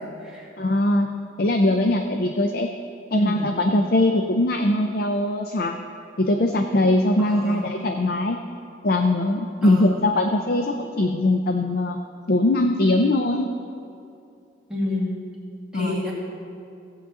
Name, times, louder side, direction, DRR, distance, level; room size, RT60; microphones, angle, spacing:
voice 1, 0.6-1.1 1.4-2.7 3.1-5.8 6.2-8.4 8.8-12.0 12.3-13.5 15.7-16.0, left 1 dB, 50° left, 5 dB, 0.5 m, -21 dB
voice 2, 3.1-3.5 7.2-7.6 9.6-10.0 14.7-15.1 15.7-16.1, left 1 dB, 5° right, -8 dB, 2.3 m, -28 dB
17.0 x 8.2 x 3.7 m, 2.5 s
head